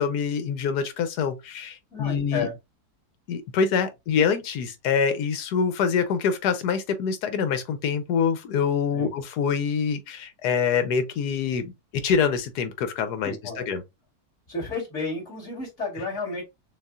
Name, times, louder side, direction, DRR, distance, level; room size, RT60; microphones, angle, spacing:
voice 1, 0.0-2.5 3.3-13.8, left 6 dB, 85° left, 1.3 m, -25 dB
voice 2, 1.9-2.5 8.9-9.2 13.2-13.7 14.5-16.4, left 3 dB, 45° left, 3.3 m, -32 dB
6.3 x 2.4 x 2.4 m
omnidirectional pair, 1.7 m